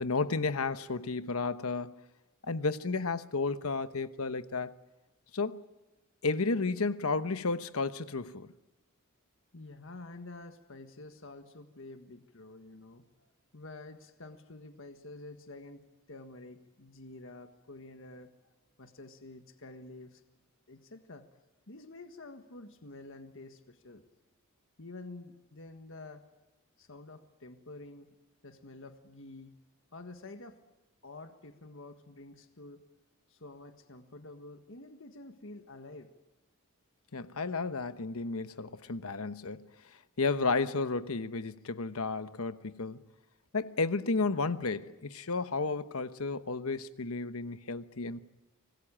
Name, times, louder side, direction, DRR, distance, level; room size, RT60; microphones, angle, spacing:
voice 1, 0.0-2.0 2.4-4.7 5.3-5.6 6.2-8.5 37.1-43.0 43.5-48.2, left 3 dB, 80° left, 1.1 m, -32 dB
voice 2, 9.5-13.1 13.5-20.2 20.7-21.3 21.7-24.1 24.8-26.3 26.8-28.1 28.4-29.5 29.9-30.6 31.0-32.9 33.3-36.1, left 2 dB, 60° left, 1.6 m, -49 dB
25.5 x 20.0 x 9.0 m
head